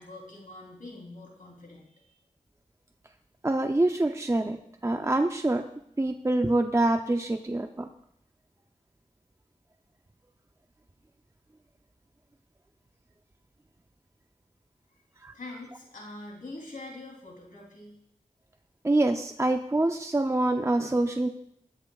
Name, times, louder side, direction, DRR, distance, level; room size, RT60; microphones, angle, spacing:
voice 1, 0.0-2.1 15.3-18.0, left 2 dB, 85° left, -1 dB, 3.3 m, -44 dB
voice 2, 3.4-5.6 6.0-7.9 15.2-15.3 18.8-21.3, right 2 dB, 20° right, 5 dB, 0.6 m, -25 dB
19.5 x 12.5 x 2.4 m, 0.71 s
wide cardioid pair, 80°, 13 cm